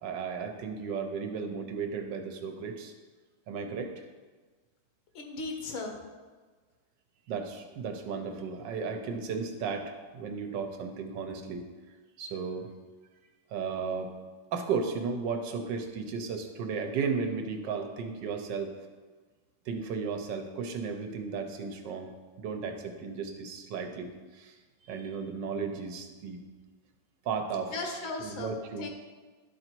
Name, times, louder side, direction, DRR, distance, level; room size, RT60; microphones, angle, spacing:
voice 1, 0.0-2.9 3.5-3.9 7.3-11.7 12.2-12.7 13.5-14.1 14.5-18.7 19.7-22.1 22.4-24.6 24.8-26.4 27.2-27.7 28.2-28.9, right 5 dB, 70° right, 5 dB, 1.3 m, -34 dB
voice 2, 5.1-6.0 27.7-28.9, left 3 dB, 80° left, 2 dB, 1.9 m, -37 dB
11.5 x 3.9 x 4.5 m, 1.4 s
omnidirectional pair, 2.2 m